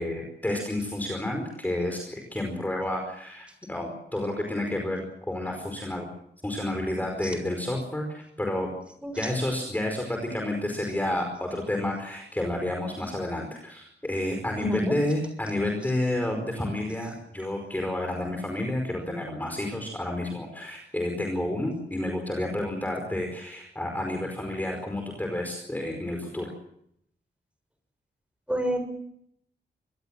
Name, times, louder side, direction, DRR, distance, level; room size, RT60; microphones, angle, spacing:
voice 1, 0.0-6.1 6.4-8.7 9.2-26.5, left 1 dB, 10° left, 2 dB, 4.9 m, -30 dB
voice 2, 14.6-15.0 28.5-28.8, equal, 5° right, 7 dB, 6.7 m, -28 dB
25.5 x 21.0 x 7.6 m, 0.72 s
wide cardioid pair, 155°, 18 cm